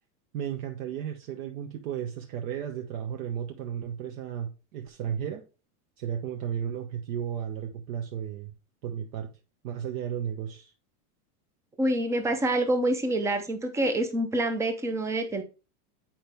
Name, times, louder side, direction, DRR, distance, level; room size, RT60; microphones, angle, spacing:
voice 1, 0.3-5.4 6.0-8.5 8.8-9.3 9.6-10.7, right 9 dB, 60° right, 1.0 m, -34 dB
voice 2, 11.8-15.4, right 1 dB, 5° right, 0.4 m, -26 dB
8.8 x 4.5 x 3.4 m
supercardioid pair, 150°, 44 cm